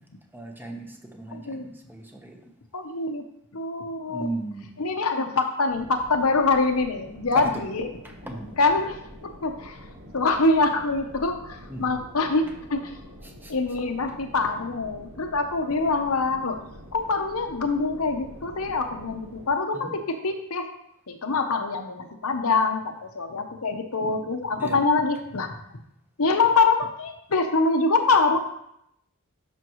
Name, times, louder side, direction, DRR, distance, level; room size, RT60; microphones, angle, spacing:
voice 1, 0.3-2.5 4.1-4.8 7.3-7.7 8.0-8.5 11.7-12.0 13.2-13.5 19.7-20.0 24.6-24.8, right 2 dB, 10° right, 2 dB, 1.0 m, -36 dB
voice 2, 1.3-1.7 2.7-3.2 3.5-4.3 4.8-7.9 8.6-9.8 10.1-13.0 13.5-16.6 16.9-20.7 21.1-25.5 26.2-28.4, left 3 dB, 75° left, 5 dB, 0.9 m, -24 dB
sound 1, 5.7-19.5, equal, 65° right, 1.5 m, -46 dB
11.0 x 6.1 x 3.1 m, 0.77 s
head